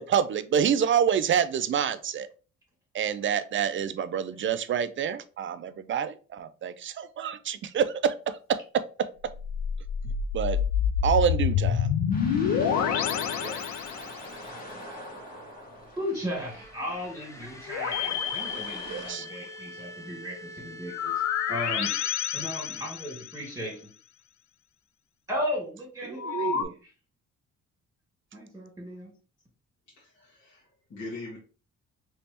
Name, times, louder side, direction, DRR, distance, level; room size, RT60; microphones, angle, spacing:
voice 1, 0.0-2.3 2.9-9.1 10.3-10.6 11.0-11.9 18.8-19.3 26.1-26.7, right 8 dB, 40° right, 0.4 m, -27 dB
sound 1, 9.3-14.4 17.7-19.5 20.9-23.5 26.2-26.6, left 8 dB, 70° left, 0.5 m, -28 dB
sound 2, 12.1-19.1, equal, 30° left, 1.4 m, -44 dB
voice 2, 16.0-21.1 21.5-21.9 22.3-23.8 25.3-26.7 28.3-29.1, equal, 10° right, 1.9 m, -35 dB
sound 3, 16.3-22.1, equal, 10° left, 0.6 m, -46 dB
voice 3, 29.9-31.4, left 2 dB, 55° left, 1.5 m, -42 dB
3.3 x 3.0 x 2.8 m
cardioid pair, 90°, 30 cm